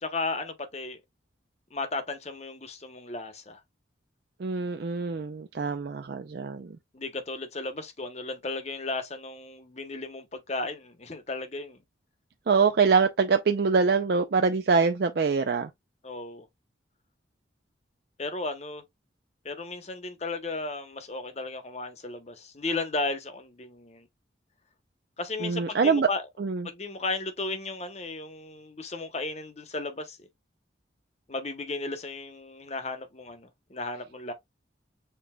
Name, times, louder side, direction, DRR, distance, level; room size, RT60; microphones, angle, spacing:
voice 1, 0.0-1.0 1.7-3.6 6.9-11.8 16.0-16.5 18.2-18.8 19.4-24.1 25.2-26.3 26.6-30.3 31.3-34.3, left 3 dB, 35° left, 0.9 m, -35 dB
voice 2, 4.4-6.8 12.5-15.7 25.4-26.1 26.4-26.7, right 5 dB, 55° right, 0.4 m, -24 dB
6.7 x 3.3 x 2.3 m
head